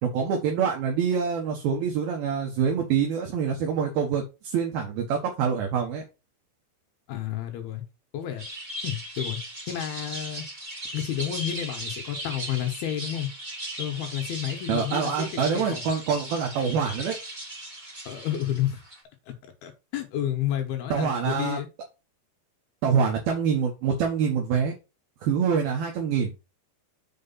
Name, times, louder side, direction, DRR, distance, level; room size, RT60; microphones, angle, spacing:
voice 1, 0.0-6.0 14.7-17.2 20.9-21.6 22.8-24.7 25.2-26.3, right 6 dB, 70° right, 2.9 m, -25 dB
voice 2, 7.1-7.8 8.1-8.4 8.8-9.4 9.7-10.5 10.9-13.3 13.8-15.8 18.1-18.8 19.3-19.4 19.6-21.7, left 11 dB, 70° left, 2.8 m, -30 dB
sound 1, 8.4-19.0, right 1 dB, 45° right, 0.6 m, -38 dB
6.7 x 4.7 x 5.4 m
omnidirectional pair, 4.9 m